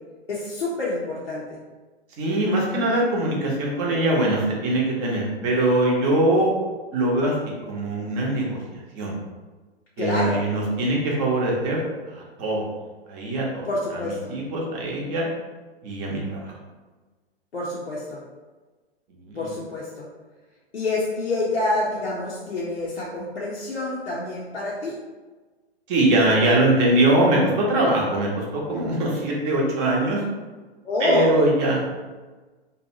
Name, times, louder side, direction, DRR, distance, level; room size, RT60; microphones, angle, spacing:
voice 1, 0.3-1.4 10.0-10.4 13.6-14.3 17.5-18.2 19.3-20.1 20.7-25.0 30.8-31.3, left 2 dB, 90° left, -6 dB, 0.6 m, -27 dB
voice 2, 2.2-6.5 6.9-7.3 7.6-9.1 10.0-12.7 13.1-13.7 14.0-15.3 15.8-16.4 19.2-19.5 25.9-30.2 31.0-31.9, right 1 dB, 30° right, -3 dB, 0.7 m, -22 dB
2.7 x 2.1 x 2.6 m, 1.3 s
figure-of-eight pair, 110°, 32 cm